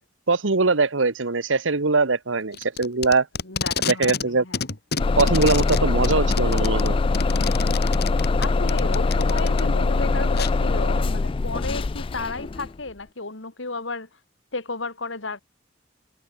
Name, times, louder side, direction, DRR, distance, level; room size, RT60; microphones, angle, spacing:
voice 1, 0.3-3.3 3.8-4.4 5.2-7.0, right 3 dB, 85° right, 1.3 m, -22 dB
Packing tape duct tape, 2.5-4.3 4.5-9.6 10.4-10.5, left 5 dB, 60° left, 2.5 m, -29 dB
voice 2, 3.4-4.6 8.4-14.2 14.5-15.4, left 3 dB, 85° left, 2.9 m, -33 dB
Bus / Engine starting, 5.0-12.7, left 3 dB, 30° left, 0.3 m, -22 dB
head